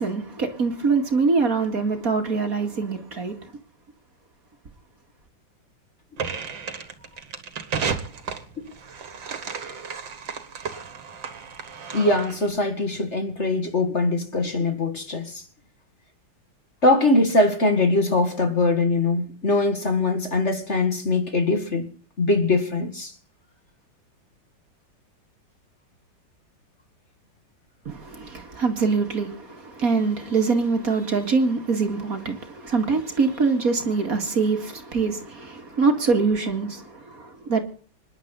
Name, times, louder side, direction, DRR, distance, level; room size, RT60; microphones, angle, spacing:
voice 1, 0.0-3.5 27.9-37.6, right 4 dB, 50° right, 2.5 m, -24 dB
sound 1, 6.2-12.5, right 6 dB, 80° right, 2.6 m, -33 dB
voice 2, 11.9-15.4 16.8-21.9 22.2-23.1, left 2 dB, 40° left, 2.2 m, -22 dB
26.5 x 11.0 x 4.0 m
omnidirectional pair, 2.0 m